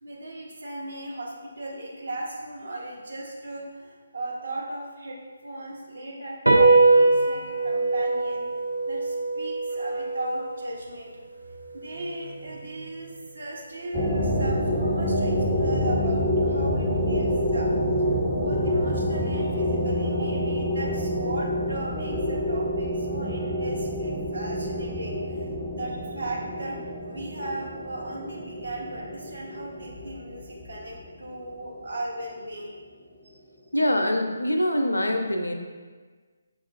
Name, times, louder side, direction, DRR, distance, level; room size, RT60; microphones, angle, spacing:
voice 1, 0.0-8.4 8.9-11.1 11.4-17.7 18.3-25.5 25.8-32.8, right 1 dB, 65° right, -3 dB, 0.9 m, -37 dB
sound 1, 6.5-13.2, right 3 dB, 80° right, 0.4 m, -23 dB
sound 2, 13.9-31.4, equal, 10° left, 0.4 m, -27 dB
voice 2, 33.7-35.5, left 1 dB, 80° left, 4 dB, 0.4 m, -24 dB
5.6 x 2.4 x 2.4 m, 1.5 s
figure-of-eight pair, 145°, 0 cm